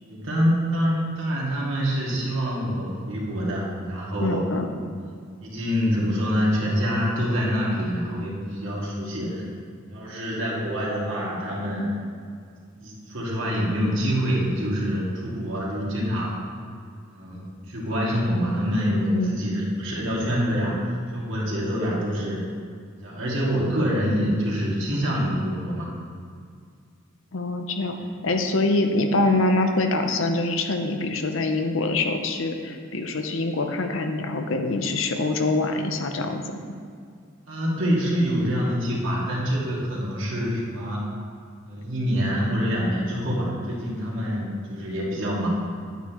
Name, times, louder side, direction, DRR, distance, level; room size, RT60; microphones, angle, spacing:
voice 1, 0.0-4.4 5.4-9.4 9.9-11.9 12.8-16.4 17.1-22.4 23.0-25.9 37.5-41.0 41.7-45.5, equal, 70° right, -5 dB, 2.1 m, -26 dB
voice 2, 4.2-4.7 19.1-19.3 27.3-28.0 28.2-36.6, left 2 dB, 70° left, 5 dB, 0.7 m, -24 dB
9.2 x 8.4 x 3.0 m, 2.2 s
head